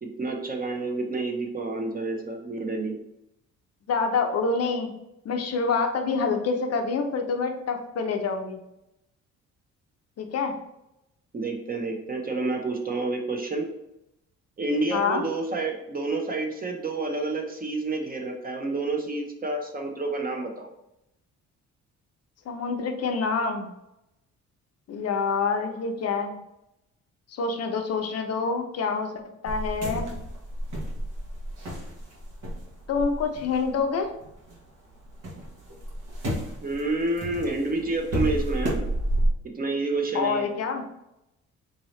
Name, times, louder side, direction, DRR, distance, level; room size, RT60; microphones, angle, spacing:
voice 1, 0.0-3.0 11.3-13.7 14.6-20.7 36.6-38.8 39.4-40.5, right 3 dB, 30° right, 2 dB, 0.7 m, -29 dB
voice 2, 3.9-4.9 5.2-8.6 10.2-10.5 14.9-15.3 22.5-23.7 24.9-26.4 27.3-29.1 29.4-30.1 32.9-34.1 40.1-40.8, left 4 dB, 55° left, 5 dB, 0.6 m, -27 dB
sound 1, 29.5-34.6 34.9-39.3, right 1 dB, 75° right, 1.1 m, -31 dB
3.9 x 2.7 x 3.1 m, 0.86 s
cardioid pair, 90°, 30 cm